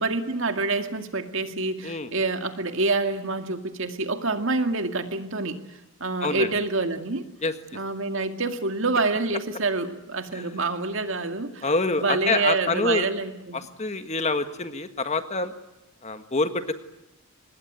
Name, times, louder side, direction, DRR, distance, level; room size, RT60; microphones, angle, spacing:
voice 1, 0.0-5.6 6.0-7.3 7.7-11.6 12.0-13.6, right 3 dB, 60° right, 7 dB, 2.2 m, -27 dB
voice 2, 11.6-13.1 13.5-15.5 16.0-16.7, left 3 dB, 30° left, 9 dB, 1.7 m, -26 dB
25.0 x 20.5 x 9.3 m, 0.94 s
head